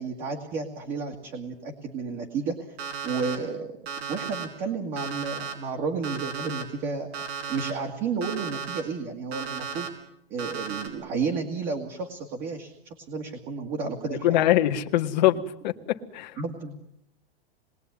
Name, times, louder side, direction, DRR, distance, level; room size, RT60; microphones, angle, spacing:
voice 1, 0.0-2.6 3.0-3.7 4.1-7.1 7.4-9.9 10.3-14.5 16.4-16.8, right 5 dB, 25° right, 2.2 m, -32 dB
Alarm, 2.8-3.4 3.9-4.4 5.0-5.5 6.0-6.6 7.1-7.7 8.2-8.8 9.3-9.9 10.4-10.9, right 6 dB, 80° right, 5.7 m, -34 dB
voice 2, 14.1-15.4 15.6-16.4, left 14 dB, 45° left, 1.7 m, -23 dB
28.0 x 21.5 x 9.8 m
supercardioid pair, 175°, 31 cm